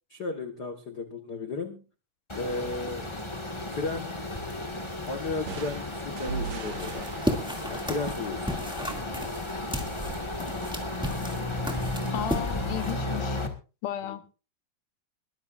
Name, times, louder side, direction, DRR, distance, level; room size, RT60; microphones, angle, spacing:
voice 1, 0.1-1.8 2.4-3.1 3.7-4.1 5.1-7.1 7.7-8.4 14.0-14.2, left 3 dB, 55° left, 1.1 m, -34 dB
sound 1, 2.3-13.5, left 2 dB, 20° left, 0.7 m, -34 dB
sound 2, 5.5-9.1, right 6 dB, 60° right, 2.6 m, -40 dB
sound 3, 6.8-12.9, equal, ahead, 1.6 m, -35 dB
voice 2, 12.1-13.4 13.8-14.3, left 12 dB, 75° left, 2.6 m, -34 dB
22.5 x 13.5 x 2.6 m
omnidirectional pair, 3.8 m